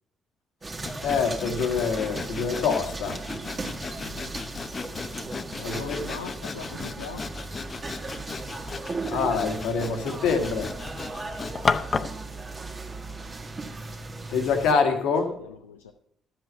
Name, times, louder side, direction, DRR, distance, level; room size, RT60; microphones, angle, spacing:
sound 1, 0.6-14.7, right 3 dB, 35° right, 1.7 m, -37 dB
Sawing, 0.8-12.2, left 4 dB, 40° left, 0.8 m, -34 dB
voice 1, 1.0-3.2 5.6-6.0 9.1-10.7 14.3-15.3, left 5 dB, 65° left, 5 dB, 1.7 m, -25 dB
voice 2, 5.6-7.2 15.4-15.9, left 6 dB, 85° left, 3 dB, 0.5 m, -41 dB
12.5 x 7.9 x 5.5 m, 0.66 s
hypercardioid pair, 45°, 0 cm